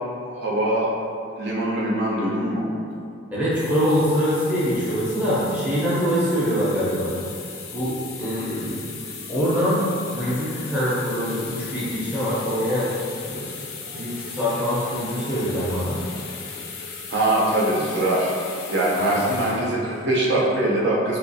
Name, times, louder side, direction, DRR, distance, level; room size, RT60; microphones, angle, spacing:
voice 1, 0.4-0.9 1.4-2.6 17.1-18.3 18.7-21.2, right 1 dB, 60° right, -5 dB, 0.7 m, -22 dB
voice 2, 3.3-7.2 7.7-8.8 9.3-9.8 10.1-12.9 13.2-13.5 13.9-16.0 19.0-19.2, equal, 5° right, -10 dB, 0.6 m, -24 dB
sound 1, 3.4-20.6, left 5 dB, 80° left, 0.4 m, -37 dB
3.2 x 2.5 x 2.7 m, 2.5 s
head